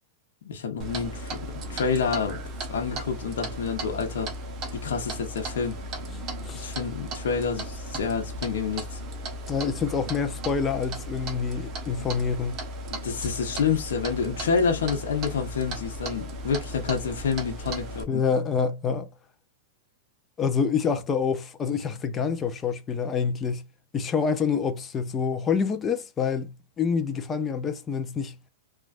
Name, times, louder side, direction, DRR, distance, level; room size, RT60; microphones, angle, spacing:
voice 1, 0.4-2.4 2.7-4.3 4.7-5.8 6.5-9.0 12.9-18.2, left 5 dB, 85° left, 0.9 m, -28 dB
Clock, 0.8-18.0, right 1 dB, 30° right, 0.8 m, -36 dB
voice 2, 9.5-12.6 18.1-19.1 20.4-23.6 23.9-28.3, left 6 dB, 20° left, 0.5 m, -27 dB
3.2 x 2.4 x 2.4 m
supercardioid pair, 145°, 0 cm